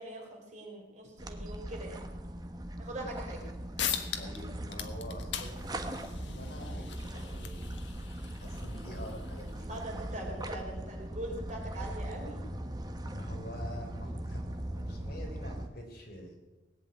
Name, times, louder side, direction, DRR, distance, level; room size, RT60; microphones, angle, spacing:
voice 1, 0.0-2.1 2.8-3.4 9.7-12.5, right 1 dB, 40° right, 0 dB, 4.1 m, -42 dB
sound 1, 1.2-15.7, right 1 dB, 20° right, 1.1 m, -40 dB
sound 2, 3.4-3.5 3.8-4.4 4.7-9.8, left 9 dB, 70° left, 1.5 m, -40 dB
voice 2, 4.2-7.8 8.4-10.1 13.0-16.4, equal, 50° left, 2 dB, 3.8 m, -47 dB
18.5 x 8.4 x 9.3 m, 1.2 s
head